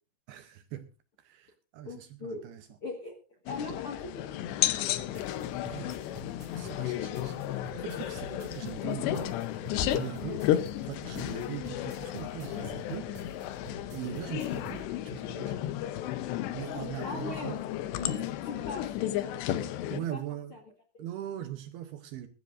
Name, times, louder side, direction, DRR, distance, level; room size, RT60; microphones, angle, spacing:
voice 1, 0.3-0.9 1.2-2.7 5.2-6.0 6.6-9.4 9.7-10.5 10.8-13.2 13.9-15.7 16.5-17.6 18.0-18.3 19.9-20.5 21.0-22.3, right 12 dB, 75° right, 2.4 m, -41 dB
voice 2, 1.8-2.4 2.8-3.1 3.4-4.8 17.0-17.5 18.0-19.4 20.1-20.2 20.5-20.6 20.9-21.0, left 3 dB, 55° left, 1.5 m, -40 dB
sound 1, 3.5-20.0, left 13 dB, 80° left, 2.9 m, -33 dB
sound 2, 4.9-14.8, right 1 dB, 35° right, 5.1 m, -50 dB
22.5 x 12.5 x 2.6 m
omnidirectional pair, 5.2 m